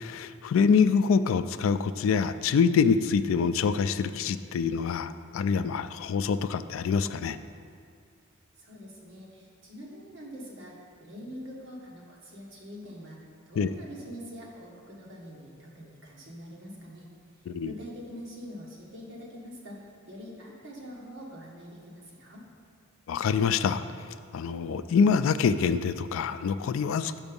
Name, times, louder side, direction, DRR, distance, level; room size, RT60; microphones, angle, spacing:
voice 1, 0.0-7.4 13.6-13.7 17.5-17.7 23.1-23.8 24.3-27.2, left 6 dB, 75° left, 12 dB, 0.3 m, -25 dB
voice 2, 8.6-10.7 11.0-17.1 17.6-22.4, equal, 65° right, -3 dB, 1.5 m, -44 dB
7.0 x 5.3 x 5.2 m, 2.3 s
head